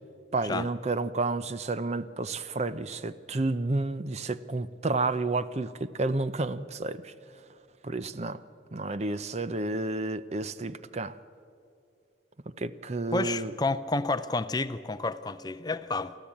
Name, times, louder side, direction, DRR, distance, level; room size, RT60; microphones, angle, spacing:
voice 1, 0.3-7.1 7.8-8.4 8.7-11.2 12.6-13.5, right 3 dB, 35° right, 0.6 m, -31 dB
voice 2, 13.1-16.2, left 3 dB, 20° left, 0.5 m, -30 dB
28.5 x 13.5 x 8.6 m
head